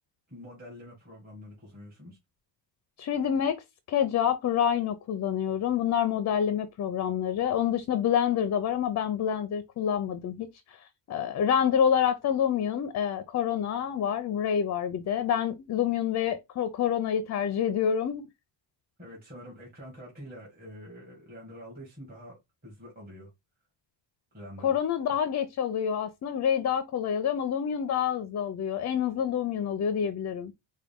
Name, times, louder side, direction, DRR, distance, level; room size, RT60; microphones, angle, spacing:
voice 1, 0.3-2.2 19.0-22.3 22.6-23.3 24.3-24.8, equal, 20° right, 1.7 m, -46 dB
voice 2, 3.0-3.6 3.9-18.2 24.6-30.5, left 8 dB, 40° left, 0.4 m, -27 dB
4.7 x 2.2 x 3.5 m
cardioid pair, 160°, 45 cm